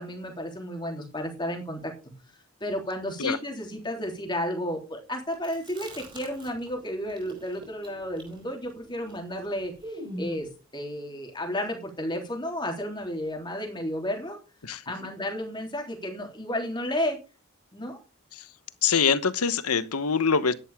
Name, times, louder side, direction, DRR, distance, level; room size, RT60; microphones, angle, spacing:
voice 1, 0.0-1.8 2.6-14.4 14.8-17.2 17.7-18.0, equal, 20° left, 3.4 m, -32 dB
Chewing mastication, 5.3-6.8 7.1-10.5, equal, 20° right, 4.8 m, -42 dB
voice 2, 18.8-20.5, left 6 dB, 90° left, 1.1 m, -24 dB
12.0 x 11.0 x 3.7 m
head